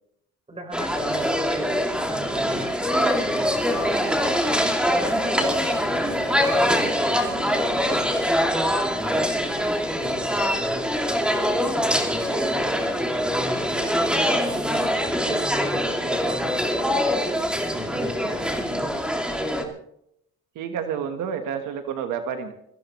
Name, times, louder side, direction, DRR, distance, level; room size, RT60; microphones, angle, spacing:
voice 1, 0.5-2.7 3.2-5.5 5.9-8.5 8.9-9.3 9.9-11.3 11.7-12.7 13.0-14.3 15.2-17.4 17.7-18.9, right 1 dB, 20° right, 5 dB, 4.0 m, -38 dB
sound 1, 0.7-19.6, equal, 5° right, 2.4 m, -24 dB
voice 2, 20.5-22.5, right 7 dB, 85° right, 7 dB, 1.4 m, -29 dB
23.5 x 14.5 x 3.1 m, 0.74 s
cardioid pair, 90°, 30 cm